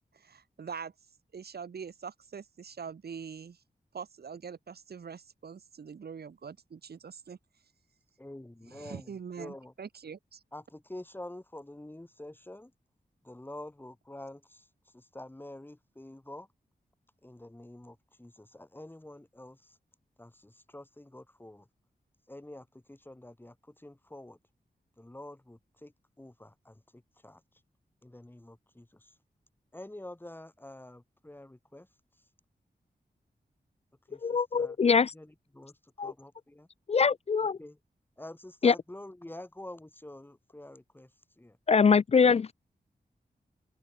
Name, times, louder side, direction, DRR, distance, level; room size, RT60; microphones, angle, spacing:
voice 1, 0.1-0.9 1.3-3.6 3.9-7.4 8.7-10.4, right 6 dB, 80° right, 1.8 m, -43 dB
voice 2, 8.2-9.7 10.5-12.7 13.2-14.7 14.9-16.5 17.2-19.8 20.2-21.7 22.3-24.4 25.0-27.4 28.0-29.1 29.7-31.9 34.1-34.8 35.1-36.7 37.6-37.8 38.2-41.1 41.4-41.6, left 1 dB, 10° left, 2.6 m, -47 dB
voice 3, 34.2-35.1 36.0-36.1 36.9-37.6 38.6-38.7 41.7-42.5, left 5 dB, 40° left, 0.3 m, -23 dB
open air
wide cardioid pair, 110°, 16 cm